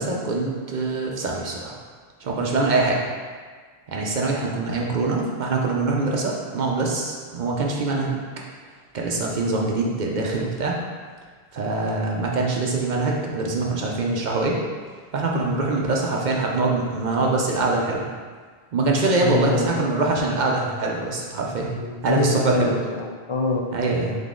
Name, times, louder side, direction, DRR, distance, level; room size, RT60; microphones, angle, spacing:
voice 1, 0.0-1.8 2.2-3.0 3.9-8.2 8.9-10.8 11.5-14.6 15.1-18.1 18.7-21.7 22.0-22.8 23.7-24.2, right 3 dB, 55° right, -1 dB, 0.6 m, -24 dB
voice 2, 19.2-19.8 21.6-23.7, left 4 dB, 60° left, -2 dB, 0.3 m, -25 dB
3.8 x 3.6 x 3.6 m, 1.5 s
omnidirectional pair, 1.0 m